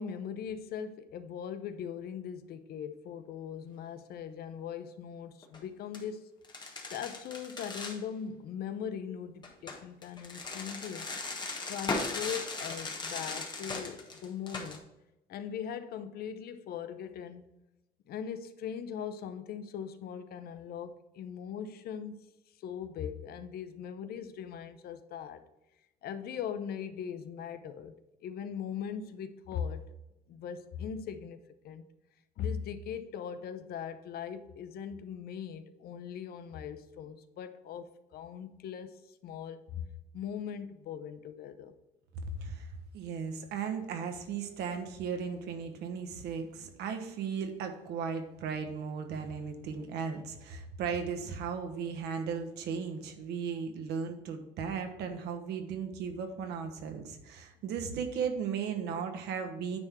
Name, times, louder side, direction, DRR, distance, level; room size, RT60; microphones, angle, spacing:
voice 1, 0.0-6.3 6.9-11.1 11.7-14.9 15.3-17.5 18.1-22.2 22.6-25.4 26.0-29.9 30.3-31.8 32.4-41.7, left 8 dB, 65° left, 0.7 m, -40 dB
sound 1, 5.4-5.6 5.9-6.0 6.4-8.0 9.4-14.8, left 3 dB, 25° left, 1.4 m, -38 dB
voice 2, 42.2-42.7 42.9-59.8, right 6 dB, 80° right, 1.2 m, -36 dB
9.4 x 3.6 x 6.1 m
cardioid pair, 110°, 17 cm